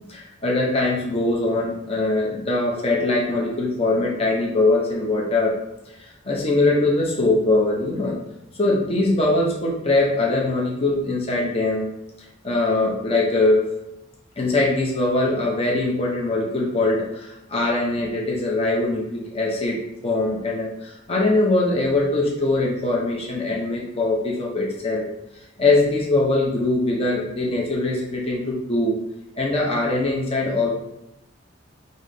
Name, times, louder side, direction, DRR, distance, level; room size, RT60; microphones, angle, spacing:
voice 1, 0.1-5.6 6.0-8.2 8.6-11.9 12.4-13.6 14.4-19.8 20.0-25.1 25.6-29.0 29.3-30.7, left 2 dB, 30° left, -2 dB, 0.7 m, -22 dB
4.9 x 2.8 x 3.9 m, 0.90 s
head